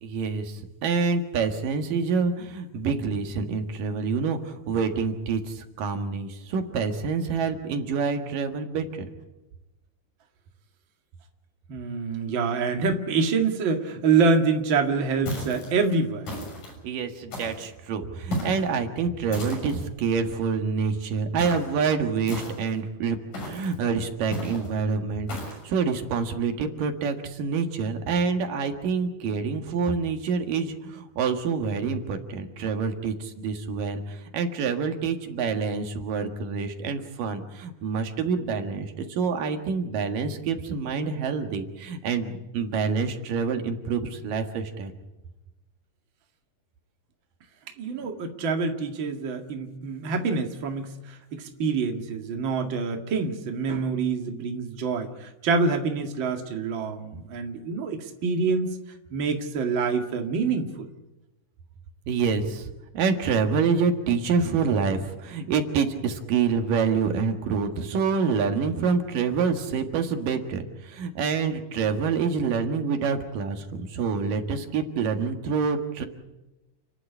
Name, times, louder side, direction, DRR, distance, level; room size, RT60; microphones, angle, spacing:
voice 1, 0.0-9.1 16.8-44.9 62.1-76.1, right 5 dB, 85° right, 6 dB, 3.4 m, -27 dB
voice 2, 11.7-16.3 47.8-58.8 59.1-60.9, right 4 dB, 40° right, 4 dB, 2.5 m, -26 dB
sound 1, 15.3-15.7 16.2-16.7 17.3-17.7 18.3-18.7 19.3-19.8 21.4-21.7 22.3-22.8 23.3-23.7 24.3-24.7 25.3-25.6, equal, 70° left, 8.0 m, -34 dB
30.0 x 11.0 x 9.9 m, 1.0 s
omnidirectional pair, 3.8 m